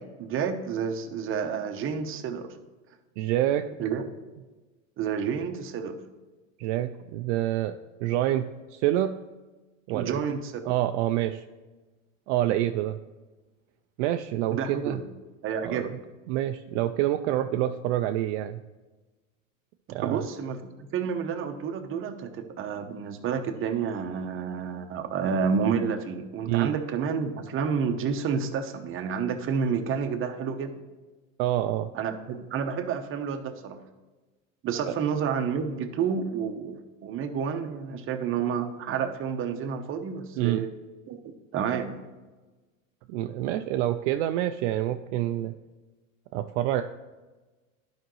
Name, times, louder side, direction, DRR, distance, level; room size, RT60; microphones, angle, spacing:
voice 1, 0.2-2.5 3.8-4.1 5.0-6.0 9.9-10.6 14.5-15.0 15.4-15.9 19.9-30.8 31.9-33.8 34.6-40.7 41.1-41.2 41.5-42.1, right 6 dB, 30° right, 6 dB, 0.9 m, -30 dB
voice 2, 3.2-3.7 6.6-9.2 9.9-10.2 10.6-11.4 12.3-13.0 14.0-15.0 15.6-15.9 16.3-18.6 19.9-20.2 26.5-26.7 31.4-31.9 40.4-40.7 43.1-45.5 46.3-46.8, right 13 dB, 60° right, 7 dB, 0.5 m, -27 dB
11.0 x 5.1 x 3.1 m, 1.2 s
supercardioid pair, 110°, 39 cm